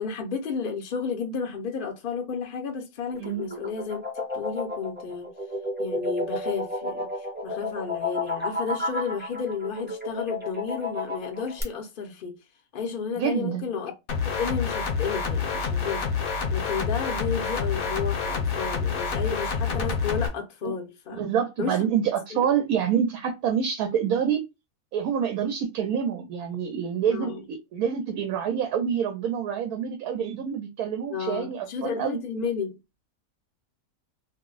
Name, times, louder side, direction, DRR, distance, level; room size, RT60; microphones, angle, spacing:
voice 1, 0.0-4.1 4.3-5.3 5.8-12.4 12.7-13.9 14.2-16.1 16.5-21.2 21.6-21.8 27.1-27.4 31.1-32.8, left 6 dB, 55° left, 0.6 m, -32 dB
sound 1, 3.1-11.6, left 2 dB, 10° right, 0.6 m, -31 dB
voice 2, 13.2-13.7 20.6-20.7 21.1-24.4 24.9-32.2, right 8 dB, 90° right, 1.1 m, -27 dB
sound 2, 14.1-20.3, left 5 dB, 75° left, 1.1 m, -27 dB
2.6 x 2.0 x 3.7 m
omnidirectional pair, 1.5 m